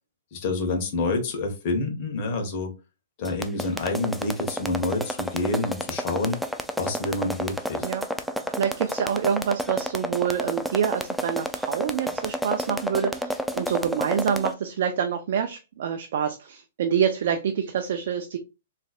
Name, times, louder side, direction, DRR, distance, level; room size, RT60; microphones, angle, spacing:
voice 1, 0.3-2.7 3.2-6.4 6.8-7.9, left 2 dB, 45° left, 3 dB, 1.4 m, -28 dB
sound 1, 3.2-14.5, equal, ahead, 0.4 m, -29 dB
voice 2, 8.5-18.4, right 8 dB, 60° right, 6 dB, 0.5 m, -26 dB
4.0 x 3.2 x 2.4 m, 0.28 s
hypercardioid pair, 135°, 0 cm